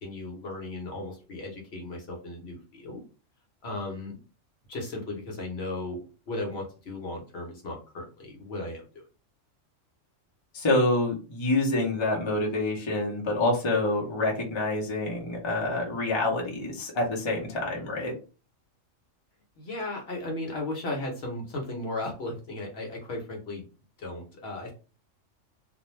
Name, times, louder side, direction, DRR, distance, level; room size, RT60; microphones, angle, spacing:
voice 1, 0.0-3.0 3.6-4.2 4.7-9.0 19.6-23.7 24.0-24.7, left 2 dB, 55° left, 0 dB, 1.0 m, -36 dB
voice 2, 10.5-18.1, left 2 dB, 30° left, -1 dB, 0.6 m, -27 dB
2.5 x 2.2 x 3.0 m, 0.34 s
omnidirectional pair, 1.3 m